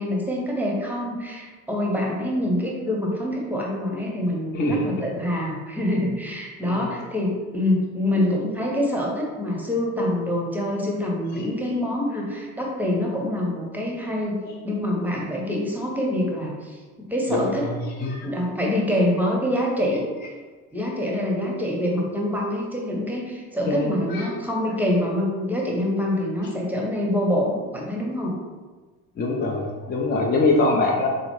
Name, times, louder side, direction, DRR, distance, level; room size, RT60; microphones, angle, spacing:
voice 1, 0.0-16.8 17.1-17.7 18.2-20.0 20.7-28.3, left 1 dB, 5° right, -2 dB, 0.8 m, -25 dB
voice 2, 4.5-4.9 6.6-6.9 11.4-11.5 17.3-17.7 18.0-18.2 23.7-24.2 29.2-31.1, left 2 dB, 25° left, -1 dB, 0.5 m, -23 dB
3.7 x 2.1 x 3.0 m, 1.4 s
hypercardioid pair, 60°, 41 cm